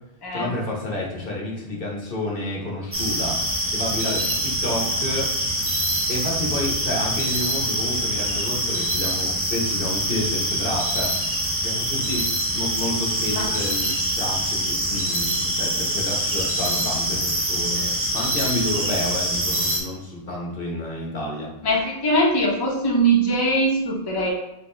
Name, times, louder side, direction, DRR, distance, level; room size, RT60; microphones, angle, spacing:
voice 1, 0.3-5.3 6.1-11.2 11.6-12.3 12.5-21.5, left 1 dB, 65° left, -2 dB, 1.2 m, -30 dB
sound 1, 2.9-19.8, right 1 dB, 15° right, 0.6 m, -25 dB
voice 2, 21.6-24.3, right 1 dB, 25° left, -3 dB, 0.7 m, -21 dB
5.7 x 2.7 x 3.2 m, 0.89 s
omnidirectional pair, 1.0 m